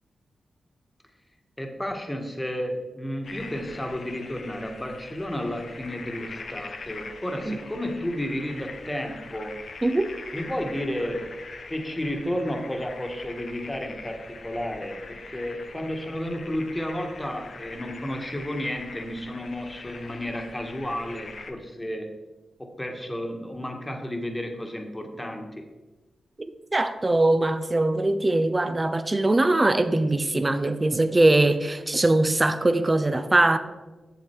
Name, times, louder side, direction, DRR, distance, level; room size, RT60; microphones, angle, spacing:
voice 1, 1.6-9.6 10.3-11.3 11.7-22.1 22.6-25.7, equal, 15° left, 1.5 m, -32 dB
sound 1, 3.2-21.5, left 4 dB, 60° left, 0.8 m, -42 dB
voice 2, 9.8-10.1 26.7-33.6, right 2 dB, 30° right, 0.6 m, -21 dB
7.9 x 7.0 x 4.6 m
cardioid pair, 55°, 0 cm